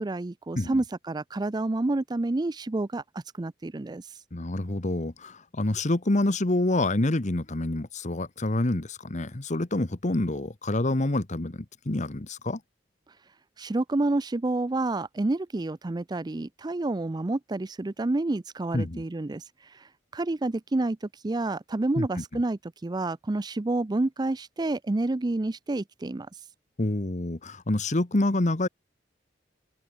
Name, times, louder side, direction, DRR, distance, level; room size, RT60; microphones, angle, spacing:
voice 1, 0.0-4.2 13.6-26.3, right 2 dB, 25° right, 0.5 m, -29 dB
voice 2, 4.3-12.6 18.7-19.0 22.0-22.2 26.8-28.7, left 2 dB, 40° left, 1.2 m, -27 dB
open air
head